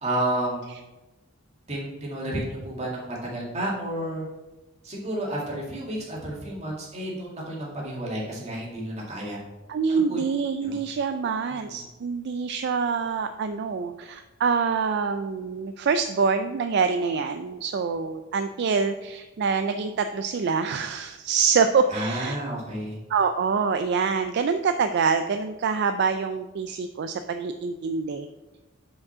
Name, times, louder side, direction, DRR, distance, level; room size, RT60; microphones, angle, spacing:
voice 1, 0.0-0.6 1.7-4.2 4.8-9.4 9.9-10.2 10.6-10.8 11.6-11.8 21.9-23.0, right 1 dB, 35° right, -4 dB, 2.2 m, -31 dB
voice 2, 9.7-22.4 23.1-28.3, right 5 dB, 55° right, 8 dB, 0.3 m, -25 dB
6.0 x 5.2 x 6.1 m, 1.1 s
head